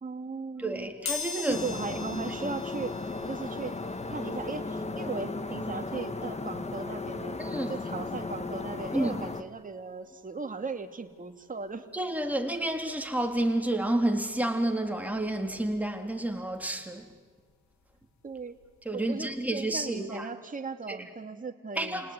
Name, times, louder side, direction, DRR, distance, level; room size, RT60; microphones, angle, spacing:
voice 1, 0.0-0.9 1.2-2.9 3.3-3.7 4.1-7.4 7.7-11.9 18.2-18.6 18.9-22.1, right 4 dB, 25° right, 2.7 m, -37 dB
voice 2, 0.6-1.6 2.4-2.5 7.4-7.8 8.9-9.2 11.9-17.0 18.9-20.3 20.9-21.0 21.8-22.1, right 1 dB, 5° right, 3.7 m, -30 dB
sound 1, 1.1-11.7 12.2-12.3 13.4-13.5 13.8-15.9 16.3-18.9 19.2-19.4 19.7-19.8, left 6 dB, 65° left, 3.9 m, -44 dB
sound 2, 1.5-9.4, left 3 dB, 20° left, 1.9 m, -35 dB
29.5 x 19.0 x 9.9 m
cardioid pair, 90°, 30 cm